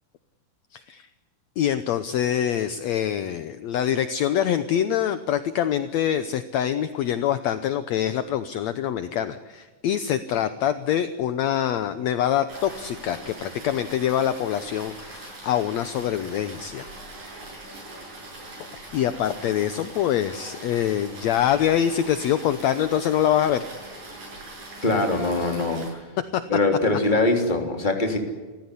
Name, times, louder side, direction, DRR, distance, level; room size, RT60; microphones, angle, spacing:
voice 1, 0.7-1.1 1.6-16.9 18.9-23.6 26.3-26.4, left 10 dB, 70° left, 11 dB, 1.7 m, -25 dB
sound 1, 12.5-25.9, right 2 dB, 65° right, 9.5 m, -41 dB
voice 2, 24.8-25.8 26.5-28.2, left 2 dB, 15° left, 4 dB, 3.2 m, -22 dB
29.5 x 15.0 x 9.9 m, 1.3 s
omnidirectional pair, 4.1 m